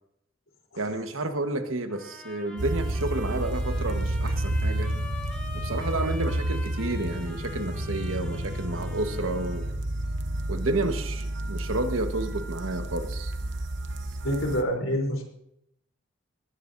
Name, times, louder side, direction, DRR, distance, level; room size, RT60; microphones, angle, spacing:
voice 1, 0.8-4.9 5.6-9.6 10.5-13.3, right 2 dB, 85° right, 7 dB, 1.4 m, -30 dB
sound 1, 1.9-9.7, left 2 dB, 5° left, 3.9 m, -44 dB
sound 2, 2.6-14.6, right 1 dB, 60° right, 1.0 m, -30 dB
voice 2, 14.2-15.2, equal, 80° left, 0 dB, 3.7 m, -27 dB
19.5 x 17.0 x 2.7 m, 0.78 s
head